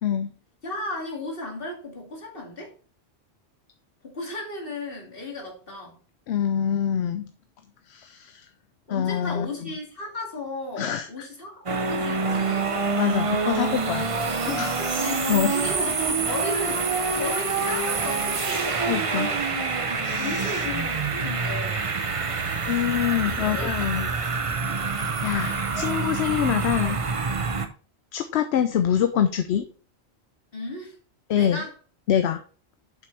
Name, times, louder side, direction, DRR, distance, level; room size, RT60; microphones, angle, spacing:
voice 1, 0.0-0.3 6.3-7.3 7.9-8.5 8.9-9.5 10.8-11.1 13.0-14.1 14.5-14.8 15.3-15.6 18.9-19.3 19.8-20.6 22.7-24.1 25.2-27.0 28.1-29.7 31.3-31.6 32.1-32.4, left 9 dB, 75° left, 0.9 m, -25 dB
voice 2, 0.6-2.7 4.0-6.0 8.9-12.8 14.8-19.0 19.9-21.8 23.0-24.1 30.5-31.0 31.3-31.7, left 2 dB, 55° left, 2.6 m, -35 dB
sound 1, 11.7-27.7, right 4 dB, 35° right, 0.7 m, -26 dB
7.6 x 6.0 x 3.3 m
omnidirectional pair, 1.1 m